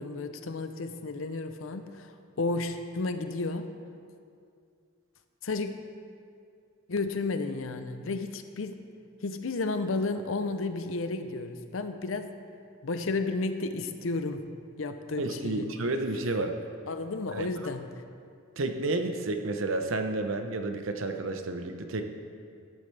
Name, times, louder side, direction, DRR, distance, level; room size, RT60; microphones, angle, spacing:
voice 1, 0.0-3.7 5.4-5.7 6.9-8.8 9.2-12.4 12.8-14.4 14.8-15.7 16.9-17.9, left 3 dB, 70° left, 8 dB, 0.7 m, -32 dB
voice 2, 15.2-16.5 17.3-17.5 18.6-22.1, right 2 dB, 70° right, 6 dB, 0.8 m, -31 dB
13.5 x 10.5 x 3.4 m, 2.3 s
head